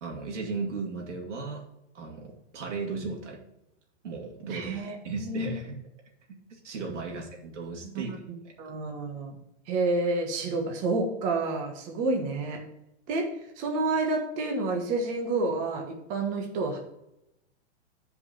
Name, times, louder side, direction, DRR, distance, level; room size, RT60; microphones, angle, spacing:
voice 1, 0.0-1.7 1.9-3.4 4.0-4.8 5.0-5.8 6.3-8.2 8.4-8.5, right 4 dB, 80° right, 0 dB, 2.7 m, -36 dB
voice 2, 4.5-5.5 8.6-9.4 9.7-12.6 13.1-13.3 13.6-16.8, right 3 dB, 20° right, 2 dB, 1.3 m, -29 dB
8.3 x 5.3 x 5.4 m, 0.84 s
hypercardioid pair, 170°, 35 cm